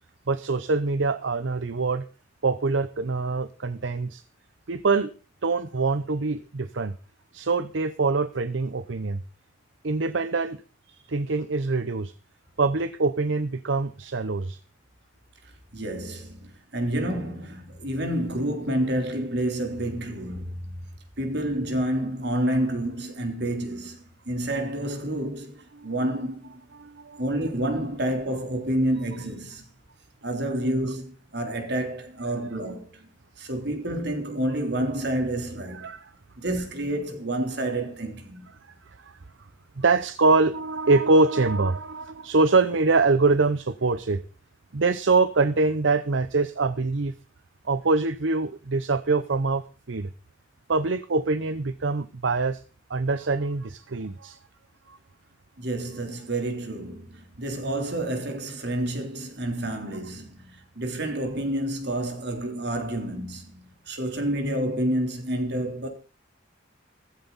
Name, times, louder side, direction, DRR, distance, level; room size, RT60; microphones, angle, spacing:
voice 1, 0.3-2.0 2.4-4.2 4.7-5.1 5.4-6.9 7.3-9.2 9.8-10.6 11.1-12.1 12.6-14.6 25.8-25.9 26.7-27.2 35.7-36.1 39.0-39.2 39.8-44.2 44.7-47.1 47.7-50.1 50.7-52.6 52.9-54.4 54.9-55.0, right 3 dB, 80° right, 0.8 m, -24 dB
voice 2, 15.4-20.9 21.2-26.6 27.2-29.7 30.2-33.1 33.4-35.9 36.4-38.5 55.6-65.9, right 1 dB, 60° right, 3.6 m, -29 dB
15.0 x 14.5 x 4.1 m
head